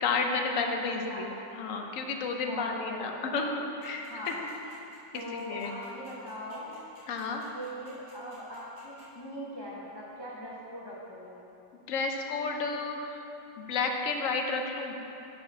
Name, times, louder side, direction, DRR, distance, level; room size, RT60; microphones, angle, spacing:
voice 1, 0.0-4.5 5.1-5.7 7.1-7.4 11.9-13.2 13.6-14.9, left 4 dB, 65° left, 3 dB, 0.8 m, -32 dB
voice 2, 0.9-1.2 2.4-3.4 4.1-4.4 5.1-6.7 7.5-11.4, equal, 40° left, -6 dB, 0.3 m, -41 dB
sound 1, 3.8-9.0, right 1 dB, 75° right, 2.7 m, -58 dB
6.4 x 6.0 x 5.7 m, 3.0 s
omnidirectional pair, 2.0 m